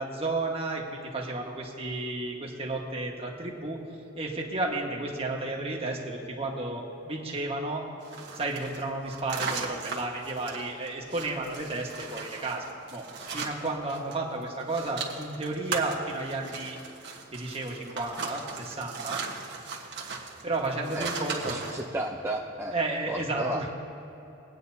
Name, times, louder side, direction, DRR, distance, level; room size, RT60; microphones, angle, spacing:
voice 1, 0.0-3.8 4.1-7.9 8.3-12.6 12.9-13.1 13.3-16.8 17.3-19.2 20.4-21.6 22.7-23.7, right 2 dB, 30° right, -1 dB, 1.5 m, -32 dB
sound 1, 8.0-14.2 14.4-21.9, right 4 dB, 60° right, 1.4 m, -38 dB
voice 2, 21.4-22.8 23.1-23.7, right 1 dB, 15° right, -2 dB, 0.6 m, -33 dB
22.0 x 9.3 x 2.8 m, 3.0 s
head